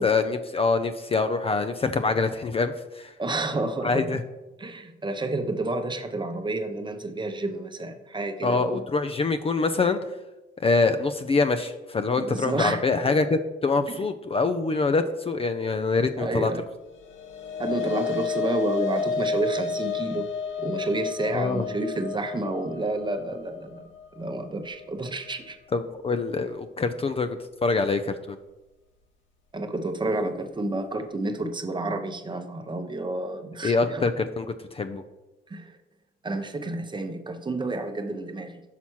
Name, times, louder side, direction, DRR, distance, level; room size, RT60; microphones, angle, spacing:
voice 1, 0.0-3.1 3.8-4.2 8.4-10.0 10.6-16.5 21.3-21.7 25.7-28.4 33.6-35.0, left 4 dB, 30° left, 9 dB, 0.4 m, -25 dB
voice 2, 3.2-4.1 4.6-8.8 12.2-12.8 13.9-14.1 16.2-16.6 17.6-20.3 20.6-25.6 29.5-34.1 35.5-35.7 36.2-38.6, right 2 dB, 25° right, 7 dB, 0.8 m, -30 dB
sound 1, 16.9-25.5, left 6 dB, 75° left, 1.2 m, -32 dB
5.8 x 4.2 x 6.1 m, 1.0 s
cardioid pair, 90°, 20 cm